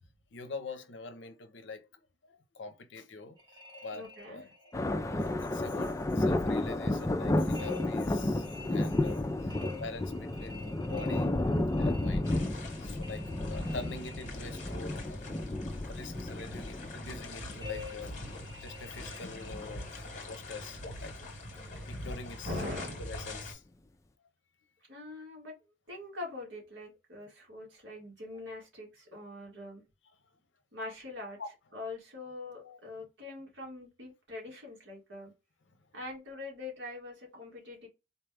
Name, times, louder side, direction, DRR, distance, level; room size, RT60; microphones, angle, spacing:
voice 1, 0.3-1.9 2.2-3.4 3.7-11.4 11.8-18.2 18.6-21.3 21.9-22.5 23.0-23.6 31.4-31.5 32.5-32.8, left 3 dB, 70° left, 0.6 m, -45 dB
sound 1, 3.4-4.9 7.5-14.9 17.6-19.9, left 4 dB, 25° right, 0.8 m, -49 dB
voice 2, 3.9-4.4 18.2-18.6 22.4-23.1 24.9-25.5 25.9-29.8 30.7-31.4 31.7-35.3 35.9-37.9, left 2 dB, 70° right, 1.7 m, -43 dB
sound 2, 4.7-18.9 19.4-19.7 20.6-20.8 21.6-21.7 23.2-23.3, left 1 dB, 15° left, 0.4 m, -32 dB
sound 3, 12.2-23.5, left 1 dB, 40° left, 1.1 m, -43 dB
4.1 x 2.3 x 3.3 m
head